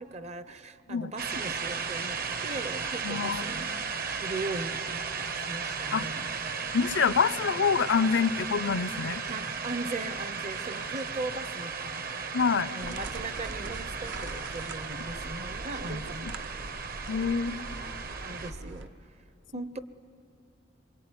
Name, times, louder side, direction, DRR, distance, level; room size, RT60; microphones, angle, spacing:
voice 1, 0.0-3.7 4.2-6.3 9.3-12.1 12.7-16.3 18.2-18.9 19.5-19.8, right 2 dB, 35° right, 13 dB, 0.7 m, -39 dB
sound 1, 1.2-18.5, right 5 dB, 50° right, 1.1 m, -35 dB
voice 2, 3.0-3.4 5.9-6.1 6.7-9.2 12.3-12.7 16.3-16.4 17.1-17.7, left 5 dB, 70° left, 17 dB, 0.6 m, -26 dB
sound 2, 12.8-18.9, right 2 dB, 75° right, 0.9 m, -42 dB
25.5 x 22.5 x 9.8 m, 2.7 s
head